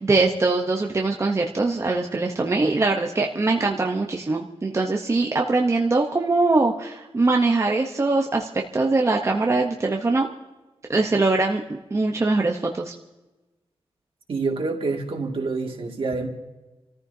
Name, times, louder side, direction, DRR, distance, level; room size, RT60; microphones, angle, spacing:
voice 1, 0.0-10.3 10.9-11.6 11.9-12.9, right 3 dB, 25° right, 1 dB, 0.8 m, -22 dB
voice 2, 14.3-16.3, right 3 dB, 60° right, 1 dB, 2.1 m, -27 dB
29.0 x 14.0 x 2.7 m, 1.1 s
wide cardioid pair, 165°, 10 cm